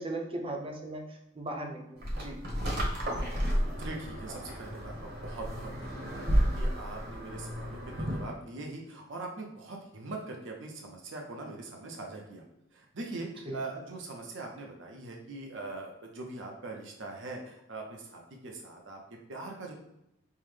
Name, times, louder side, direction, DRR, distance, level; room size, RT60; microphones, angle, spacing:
voice 1, 0.0-2.4 13.4-13.6, right 1 dB, 25° right, 2 dB, 0.6 m, -38 dB
sound 1, 2.0-8.4, equal, 50° right, 1.0 m, -32 dB
voice 2, 3.8-12.4 12.7-19.0 19.3-19.7, right 2 dB, 65° right, 1 dB, 0.6 m, -42 dB
5.5 x 2.1 x 3.2 m, 0.85 s
head